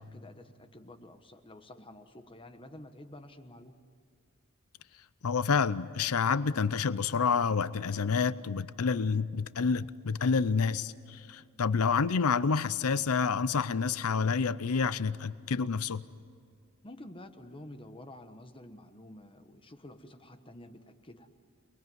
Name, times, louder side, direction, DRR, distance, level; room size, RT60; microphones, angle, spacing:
voice 1, 0.0-3.8 16.8-21.3, left 1 dB, 25° left, 8 dB, 1.2 m, -50 dB
voice 2, 5.2-16.0, left 5 dB, 75° left, 16 dB, 0.6 m, -28 dB
28.5 x 20.5 x 9.4 m, 2.3 s
head